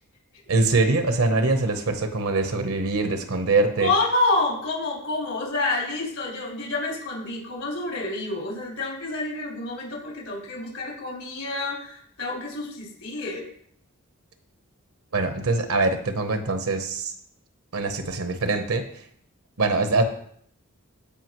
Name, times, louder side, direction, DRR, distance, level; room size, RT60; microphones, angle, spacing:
voice 1, 0.5-3.9 15.1-17.1 17.7-18.8 19.6-20.0, right 3 dB, 85° right, 7 dB, 1.0 m, -23 dB
voice 2, 3.8-13.5, left 2 dB, 90° left, -4 dB, 4.2 m, -28 dB
15.5 x 5.2 x 3.1 m, 0.63 s
head